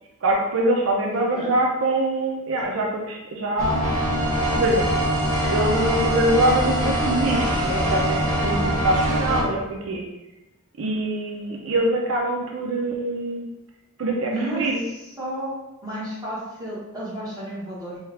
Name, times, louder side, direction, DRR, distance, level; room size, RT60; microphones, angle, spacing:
voice 1, 0.2-3.8 4.5-4.9 5.4-10.0 10.8-13.4 14.0-14.8, right 1 dB, 80° right, -1 dB, 0.6 m, -24 dB
sound 1, 3.6-9.4, right 1 dB, 40° right, 1.0 m, -23 dB
voice 2, 14.3-14.6 15.2-18.0, right 1 dB, 20° right, -8 dB, 1.4 m, -32 dB
4.4 x 2.3 x 3.4 m, 0.96 s
head